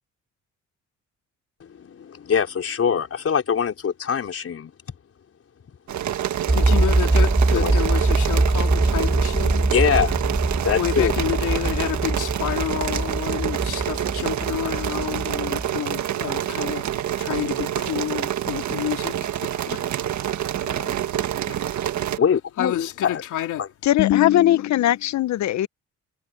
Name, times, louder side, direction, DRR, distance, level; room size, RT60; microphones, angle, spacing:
voice 1, 1.6-4.7 7.5-7.8 9.7-10.2 10.6-11.2 22.2-23.2 23.6-23.7, left 7 dB, 50° left, 4.7 m, -23 dB
sound 1, 5.9-22.2, right 11 dB, 70° right, 1.6 m, -27 dB
voice 2, 6.5-9.7 10.7-22.2 22.6-23.7 24.0-25.0, left 12 dB, 80° left, 3.2 m, -29 dB
sound 2, 6.5-15.7, right 2 dB, 15° right, 5.6 m, -23 dB
voice 3, 23.8-25.7, left 13 dB, 65° left, 0.8 m, -20 dB
cardioid pair, 90°, 30 cm